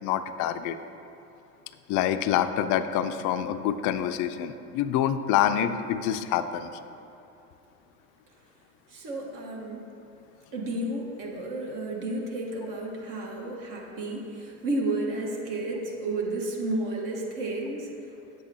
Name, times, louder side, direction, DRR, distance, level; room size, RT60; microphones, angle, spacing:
voice 1, 0.0-0.8 1.9-6.7, left 10 dB, 50° left, 10 dB, 0.4 m, -26 dB
voice 2, 8.9-9.8 10.5-17.9, right 2 dB, 55° right, -1 dB, 1.4 m, -32 dB
7.7 x 7.7 x 2.8 m, 2.7 s
hypercardioid pair, 75°, 41 cm